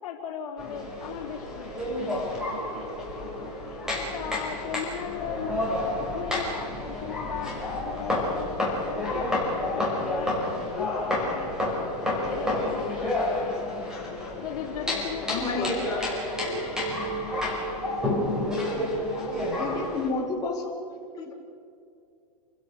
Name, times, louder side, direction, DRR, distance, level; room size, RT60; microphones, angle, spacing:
voice 1, 0.0-13.7 14.4-16.8 19.1-19.3, left 7 dB, 60° left, 0 dB, 3.4 m, -38 dB
sound 1, 0.6-20.1, left 1 dB, 5° right, 5.4 m, -30 dB
voice 2, 15.3-15.9 18.7-18.9 19.6-20.7 21.2-21.3, left 3 dB, 20° left, -3 dB, 5.1 m, -30 dB
28.5 x 16.5 x 6.6 m, 2.4 s
hypercardioid pair, 145°, 20 cm